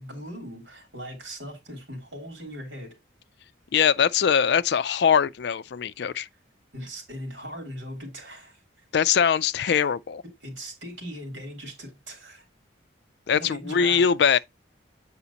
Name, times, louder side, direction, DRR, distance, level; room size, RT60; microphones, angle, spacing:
voice 1, 0.0-3.0 6.0-6.1 6.7-8.6 9.7-9.9 10.4-12.4 13.3-14.1, equal, 75° right, 3.4 m, -39 dB
voice 2, 3.7-6.3 8.9-10.2 13.3-14.4, left 7 dB, 60° left, 0.4 m, -22 dB
8.3 x 4.9 x 2.8 m
head